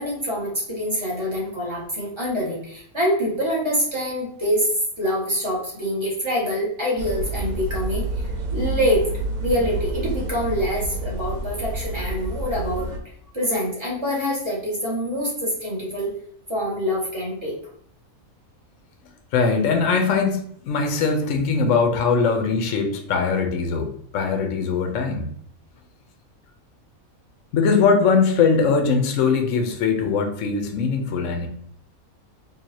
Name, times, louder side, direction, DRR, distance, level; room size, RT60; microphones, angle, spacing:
voice 1, 0.0-4.7 5.0-8.0 8.5-9.0 9.4-12.9 13.3-16.1 16.5-17.5, equal, 20° right, -5 dB, 1.7 m, -25 dB
sound 1, 7.0-13.0, right 1 dB, 85° right, 1.2 m, -28 dB
voice 2, 19.3-25.3 27.5-31.5, left 5 dB, 65° left, 4 dB, 1.0 m, -21 dB
4.7 x 2.8 x 2.8 m, 0.65 s
omnidirectional pair, 1.5 m